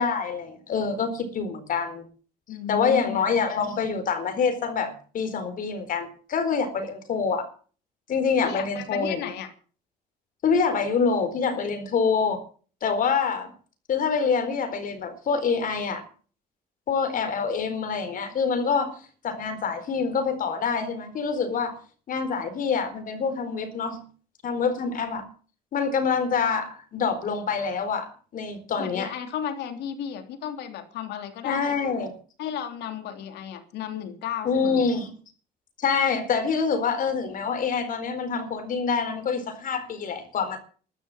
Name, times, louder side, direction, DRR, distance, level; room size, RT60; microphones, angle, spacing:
voice 1, 0.0-2.1 2.7-7.5 8.1-9.2 10.4-12.4 12.8-13.5 13.9-16.0 16.9-18.9 19.2-21.7 22.1-24.0 24.4-25.2 25.7-28.1 28.3-29.1 31.4-32.1 34.4-35.1 35.8-40.6, left 5 dB, 55° left, 9 dB, 4.2 m, -26 dB
voice 2, 2.5-3.2 8.4-9.5 28.8-31.8 32.4-34.8, left 9 dB, 80° left, 7 dB, 3.2 m, -34 dB
14.0 x 12.5 x 7.2 m, 0.41 s
cardioid pair, 110°, 17 cm